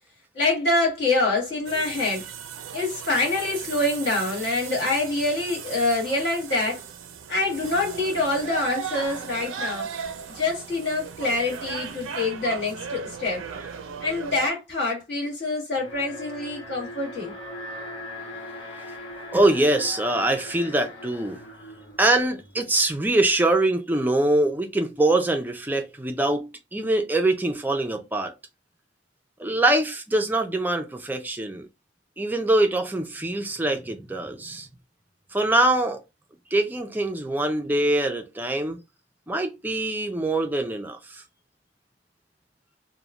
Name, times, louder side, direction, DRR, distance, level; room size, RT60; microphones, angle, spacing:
voice 1, 0.3-2.3 2.7-6.8 7.3-9.9 10.3-13.4 14.0-17.3, left 2 dB, 55° left, 1.6 m, -25 dB
sound 1, 1.7-14.5, right 6 dB, 80° right, 0.4 m, -36 dB
Alarm, 15.8-22.9, left 1 dB, 80° left, 1.0 m, -40 dB
voice 2, 19.3-21.4 22.0-28.3 29.4-31.7 32.2-34.7 35.3-36.0 36.5-38.8 39.3-41.2, right 2 dB, 10° right, 0.3 m, -23 dB
3.0 x 2.1 x 2.4 m
head